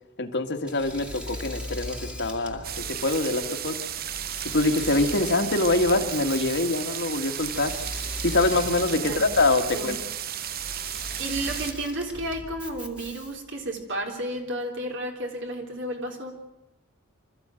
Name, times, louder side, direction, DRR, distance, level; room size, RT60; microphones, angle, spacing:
voice 1, 0.2-3.8 4.4-7.7 8.2-10.0, left 2 dB, 55° left, 5 dB, 1.9 m, -24 dB
Engine / Mechanisms, 0.6-13.5, equal, 5° right, 2.1 m, -39 dB
sound 1, 2.6-11.7, right 10 dB, 45° right, 0.7 m, -34 dB
voice 2, 11.2-16.3, right 1 dB, 60° right, 3 dB, 3.7 m, -32 dB
26.0 x 14.0 x 9.1 m, 0.91 s
head